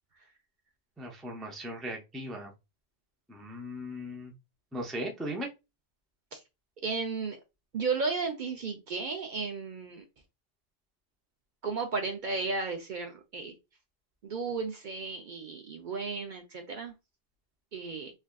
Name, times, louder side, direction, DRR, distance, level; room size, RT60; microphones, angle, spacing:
voice 1, 1.0-2.5 3.3-4.3 4.7-5.5, equal, ahead, 0.4 m, -38 dB
voice 2, 6.8-7.4 7.7-10.1 11.6-13.6 14.2-16.9 17.7-18.1, right 4 dB, 60° right, 0.6 m, -34 dB
3.3 x 2.4 x 2.2 m
omnidirectional pair, 1.1 m